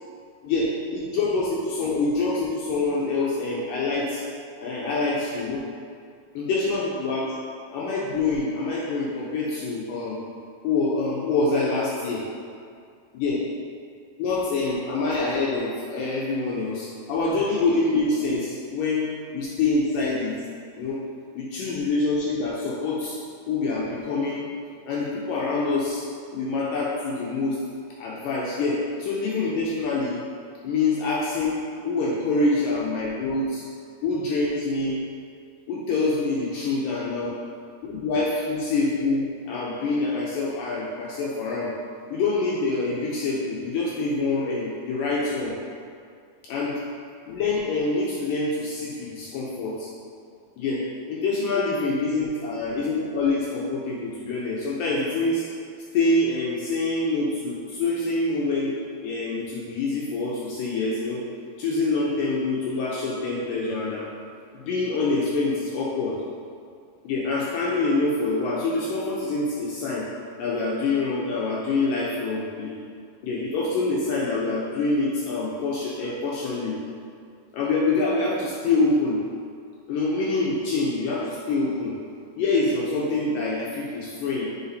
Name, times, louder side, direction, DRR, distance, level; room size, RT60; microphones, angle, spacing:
voice 1, 0.4-4.2 4.6-5.7 6.4-7.4 7.7-10.2 10.6-12.3 13.1-13.4 14.2-20.3 20.8-21.0 21.4-23.2 23.5-24.5 24.9-26.1 26.3-27.6 28.0-30.2 30.6-33.6 34.0-35.0 35.7-37.4 37.8-41.7 42.1-45.6 46.5-46.8 47.3-49.9 50.6-55.5 55.9-58.8 59.0-61.3 61.6-64.1 64.5-66.2 67.0-70.1 70.4-72.7 73.2-76.8 77.5-79.2 79.9-82.0 82.4-84.5, left 3 dB, 80° left, -5 dB, 1.9 m, -26 dB
9.1 x 4.9 x 2.7 m, 2.2 s
omnidirectional pair, 4.6 m